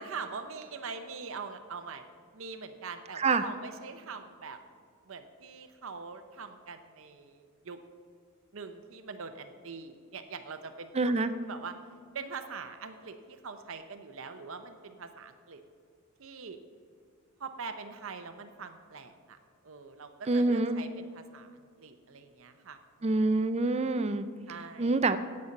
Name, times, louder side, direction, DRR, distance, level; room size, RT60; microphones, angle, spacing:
voice 1, 0.0-2.0 2.3-4.6 5.0-7.8 8.5-11.8 12.1-15.6 16.2-16.6 17.4-19.4 19.6-23.2 24.5-25.0, right 5 dB, 65° right, 7 dB, 0.7 m, -43 dB
voice 2, 11.0-11.3 20.3-20.8 23.0-24.3 24.8-25.2, right 3 dB, 30° right, 11 dB, 0.4 m, -26 dB
9.6 x 8.7 x 5.3 m, 2.2 s
head